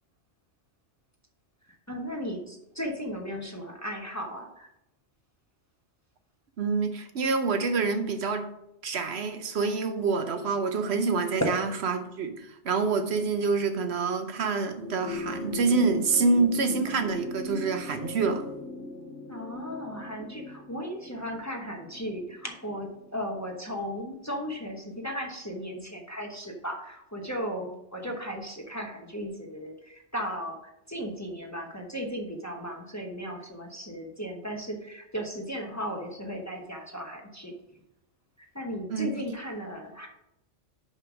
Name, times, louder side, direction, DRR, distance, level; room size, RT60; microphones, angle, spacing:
voice 1, 1.9-4.7 13.2-13.3 19.3-30.6 30.9-37.5 38.4-40.1, equal, 15° left, 1 dB, 0.9 m, -36 dB
voice 2, 6.6-8.5 8.8-18.5 38.9-39.2, right 4 dB, 65° right, 8 dB, 1.0 m, -27 dB
sound 1, 14.7-23.4 24.6-24.7, left 3 dB, 85° left, 1.6 m, -39 dB
5.5 x 5.4 x 6.1 m, 0.83 s
omnidirectional pair, 1.2 m